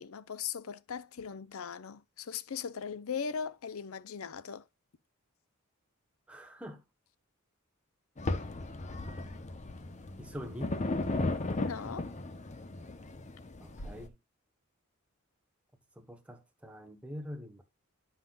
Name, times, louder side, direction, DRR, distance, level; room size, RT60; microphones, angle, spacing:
voice 1, 0.0-4.6 11.6-12.1, left 6 dB, 80° left, 0.6 m, -39 dB
voice 2, 6.3-6.8 10.2-10.8 13.6-14.1 16.0-17.6, equal, 5° right, 1.1 m, -44 dB
sound 1, 8.2-14.1, left 2 dB, 35° left, 0.8 m, -36 dB
9.9 x 5.7 x 2.3 m
head